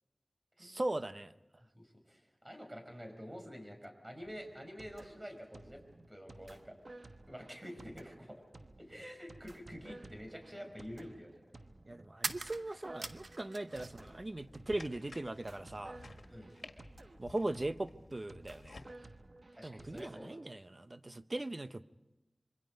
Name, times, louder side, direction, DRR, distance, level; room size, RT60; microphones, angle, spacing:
voice 1, 0.6-1.3 11.9-16.0 17.2-18.8 19.6-21.8, right 2 dB, 45° right, 12 dB, 0.8 m, -39 dB
voice 2, 1.7-5.8 6.1-6.7 7.3-8.4 8.8-11.3 16.3-16.5 19.5-20.4, equal, 25° right, 4 dB, 5.4 m, -48 dB
sound 1, 4.2-20.2, right 2 dB, 65° right, 1.2 m, -55 dB
sound 2, 12.2-14.1 14.4-15.3, right 3 dB, 90° right, 0.9 m, -43 dB
sound 3, 13.7-18.9, left 3 dB, 85° left, 1.6 m, -55 dB
27.0 x 23.0 x 5.2 m, 1.0 s
wide cardioid pair, 45°, 0 cm